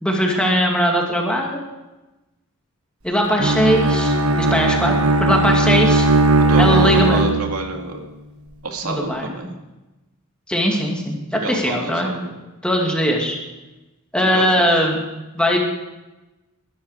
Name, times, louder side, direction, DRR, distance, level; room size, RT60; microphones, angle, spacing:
voice 1, 0.0-1.6 3.0-4.9 5.2-6.1 6.6-7.2 8.8-9.3 10.5-11.2 11.5-12.1 12.6-13.4 14.1-15.0 15.3-15.6, equal, 5° left, 0 dB, 2.4 m, -19 dB
Bowed string instrument, 3.4-7.8, right 2 dB, 70° right, 1.3 m, -17 dB
voice 2, 6.4-8.0 8.6-9.5 11.3-12.3 14.1-14.8, right 3 dB, 90° right, 2 dB, 2.3 m, -28 dB
20.5 x 11.5 x 4.9 m, 1.1 s
head